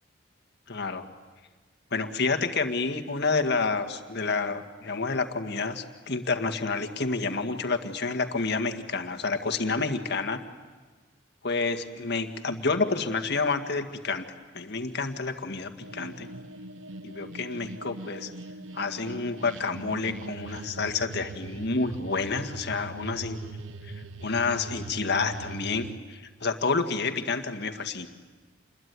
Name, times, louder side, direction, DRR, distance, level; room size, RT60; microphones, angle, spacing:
voice 1, 0.7-1.0 1.9-10.4 11.4-14.3 14.5-16.3 17.0-18.3 18.7-23.4 23.8-23.9 24.2-28.1, left 4 dB, 60° left, 7 dB, 1.9 m, -29 dB
sound 1, 15.8-26.0, right 2 dB, 80° right, 1.0 m, -41 dB
28.5 x 21.5 x 9.6 m, 1.4 s
head